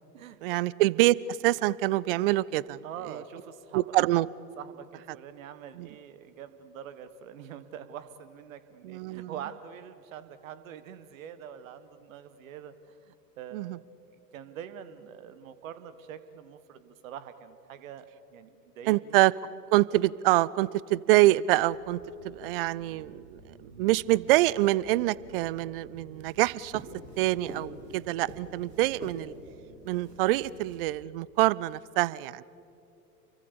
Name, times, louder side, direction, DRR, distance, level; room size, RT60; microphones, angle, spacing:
voice 1, 0.4-2.8 3.1-3.2 3.7-4.3 5.8-5.9 8.8-9.3 13.5-13.8 18.9-19.3 19.7-26.8 27.2-29.3 29.9-32.4, right 17 dB, 35° right, 23 dB, 0.5 m, -25 dB
voice 2, 2.8-3.8 4.6-13.8 14.3-19.2, right 9 dB, 55° right, 13 dB, 1.7 m, -44 dB
sound 1, 21.6-30.8, right 2 dB, 80° right, 3.5 m, -48 dB
29.0 x 23.5 x 6.9 m, 2.8 s
figure-of-eight pair, 95°, 48 cm